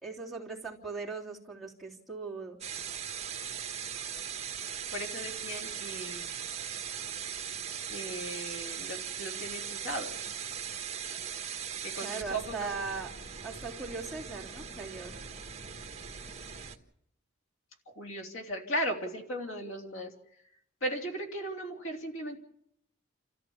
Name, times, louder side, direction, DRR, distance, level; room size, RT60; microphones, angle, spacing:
voice 1, 0.0-2.6 12.0-13.1 13.4-15.3, right 4 dB, ahead, 1 dB, 3.1 m, -39 dB
sound 1, 2.6-16.8, right 8 dB, 35° right, 1.5 m, -39 dB
voice 2, 4.9-6.3 7.9-10.2 11.8-12.7 17.9-20.1 20.8-22.4, right 1 dB, 80° left, 2 dB, 3.4 m, -37 dB
29.5 x 14.0 x 7.2 m, 0.74 s
head